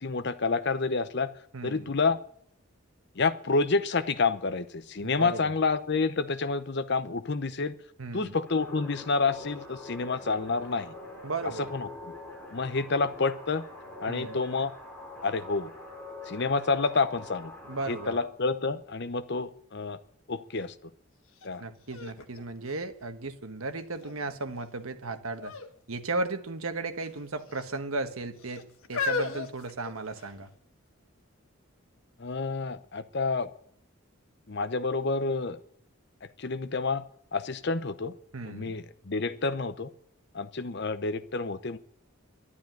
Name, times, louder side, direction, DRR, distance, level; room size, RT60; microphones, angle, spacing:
voice 1, 0.0-1.3 1.6-2.2 3.2-7.7 8.1-10.9 11.7-12.1 12.5-13.6 14.0-14.7 15.2-15.7 16.3-17.5 17.9-20.0 20.3-20.7 21.4-21.6 32.2-33.5 34.5-35.6 36.4-37.0 37.3-38.1 38.4-39.9 40.3-41.8, left 4 dB, 50° left, 13 dB, 0.8 m, -29 dB
voice 2, 1.5-1.9 5.0-5.6 8.0-8.4 11.2-11.7 14.1-14.4 17.7-18.2 21.6-25.5 25.9-28.6 28.9-30.5 38.3-38.7, right 3 dB, 80° right, 8 dB, 1.3 m, -35 dB
sound 1, 8.5-18.2, left 2 dB, 10° left, 4.6 m, -44 dB
sound 2, 21.4-21.5 21.9-23.4 24.0-24.5 25.4-25.7 26.0-26.2 27.0-27.7 28.4-30.4 31.2-31.3, left 4 dB, 75° left, 1.5 m, -35 dB
12.0 x 11.5 x 9.1 m, 0.67 s
head